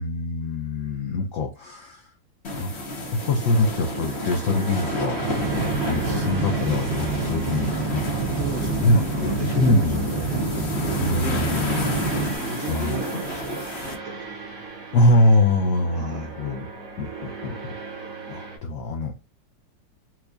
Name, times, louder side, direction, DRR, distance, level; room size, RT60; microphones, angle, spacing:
voice 1, 0.0-2.1 2.6-2.7 3.1-5.5 5.8-8.0 8.4-10.0 11.0-11.9 12.6-13.0 14.9-16.7 17.0-17.5 18.3-19.1, left 2 dB, 80° left, 0.7 m, -23 dB
sound 1, 2.4-13.9, left 1 dB, 45° left, 0.9 m, -31 dB
sound 2, 2.5-18.6, right 5 dB, 50° right, 1.6 m, -37 dB
sound 3, 5.2-12.4, right 3 dB, 70° right, 1.1 m, -27 dB
voice 2, 6.0-6.3 8.3-14.3 15.9-16.4, right 5 dB, 85° right, 0.6 m, -38 dB
4.5 x 2.2 x 2.5 m
omnidirectional pair, 2.0 m